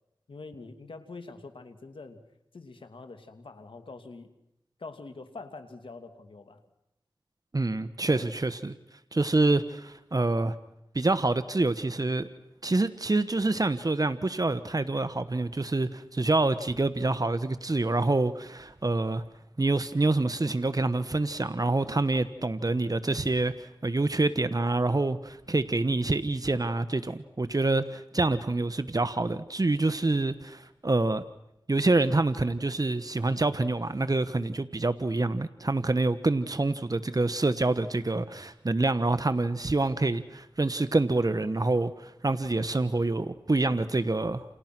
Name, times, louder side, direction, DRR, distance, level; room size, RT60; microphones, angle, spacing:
voice 1, 0.3-2.2 2.5-4.3 4.8-6.6 8.2-8.3, left 3 dB, 90° left, 7 dB, 2.7 m, -45 dB
voice 2, 7.5-8.7 9.1-10.5 10.9-12.3 12.6-19.2 19.6-31.2 31.7-44.4, right 2 dB, 45° right, 12 dB, 1.3 m, -26 dB
29.5 x 29.0 x 6.2 m, 0.85 s
cardioid pair, 40°, 9 cm